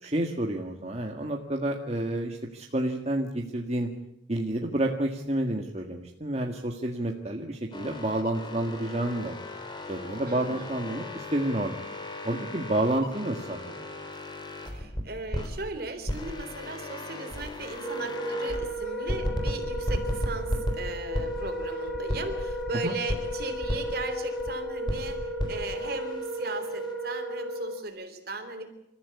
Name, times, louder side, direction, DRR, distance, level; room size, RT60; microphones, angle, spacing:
voice 1, 0.0-3.9 4.3-9.3 9.9-11.8 12.2-13.9 22.8-23.0, right 1 dB, 35° right, 1 dB, 1.7 m, -29 dB
sound 1, 7.7-15.6 16.0-18.7 19.1-22.7 23.1-24.5 24.9-26.9, left 1 dB, 25° left, 3.5 m, -35 dB
voice 2, 10.3-10.7 14.7-28.7, right 3 dB, 55° right, 7 dB, 3.6 m, -37 dB
Wind instrument woodwind instrument, 17.8-27.8, equal, ahead, 5.2 m, -34 dB
29.0 x 14.5 x 8.4 m, 0.89 s
head